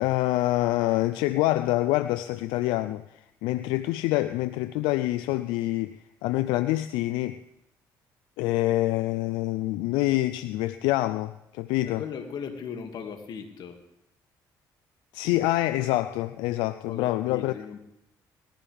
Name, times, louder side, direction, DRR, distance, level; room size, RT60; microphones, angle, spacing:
voice 1, 0.0-7.4 8.4-12.0 15.1-17.5, left 16 dB, 90° left, 0.4 m, -26 dB
voice 2, 11.8-13.8 16.9-17.8, left 6 dB, 65° left, 2.3 m, -38 dB
20.0 x 14.0 x 3.5 m
supercardioid pair, 80°, 8 cm